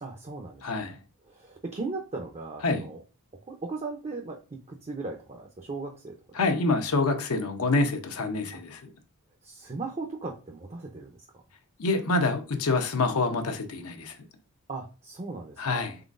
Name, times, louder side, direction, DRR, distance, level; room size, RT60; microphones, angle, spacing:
voice 1, 0.0-1.0 1.3-3.0 3.5-4.4 4.7-6.1 9.4-11.2 14.7-15.9, right 3 dB, 30° right, 0.5 m, -37 dB
voice 2, 0.6-1.0 2.6-2.9 6.3-8.9 11.8-14.1 15.6-16.0, left 3 dB, 80° left, 0.7 m, -26 dB
3.9 x 3.8 x 2.5 m
head